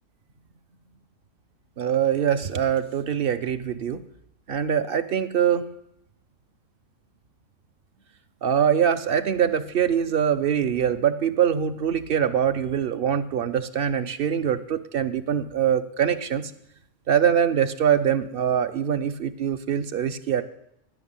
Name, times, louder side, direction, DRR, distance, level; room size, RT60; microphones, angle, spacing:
voice 1, 1.8-4.0 4.5-5.7 8.4-16.5 17.1-20.4, right 8 dB, 55° right, 11 dB, 0.8 m, -23 dB
13.5 x 6.2 x 8.8 m, 0.79 s
omnidirectional pair, 1.3 m